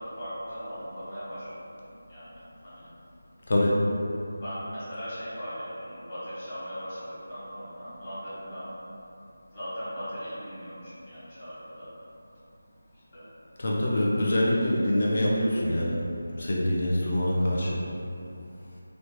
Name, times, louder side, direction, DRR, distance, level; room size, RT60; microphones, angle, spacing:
voice 1, 0.0-2.9 4.4-8.8 9.5-11.9 12.9-13.3 16.3-16.6, equal, 30° left, -14 dB, 1.3 m, -39 dB
voice 2, 3.5-3.8 13.6-16.0 16.4-17.8, left 1 dB, 50° left, -4 dB, 0.5 m, -25 dB
3.1 x 2.1 x 2.9 m, 2.7 s
figure-of-eight pair, 170°, 0 cm